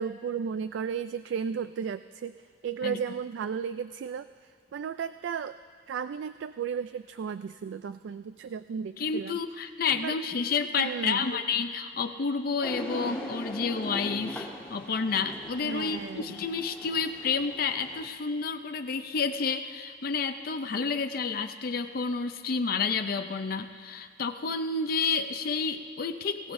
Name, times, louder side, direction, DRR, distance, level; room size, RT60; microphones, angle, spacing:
voice 1, 0.0-2.4 2.6-4.3 4.7-5.6 5.9-9.4 9.9-10.2 10.8-11.3 15.6-16.3, right 7 dB, 75° right, 12 dB, 0.3 m, -34 dB
voice 2, 9.0-26.5, left 5 dB, 50° left, 7 dB, 0.5 m, -30 dB
sound 1, 12.6-18.1, equal, 5° left, 1.6 m, -40 dB
22.5 x 16.0 x 2.6 m, 2.1 s
head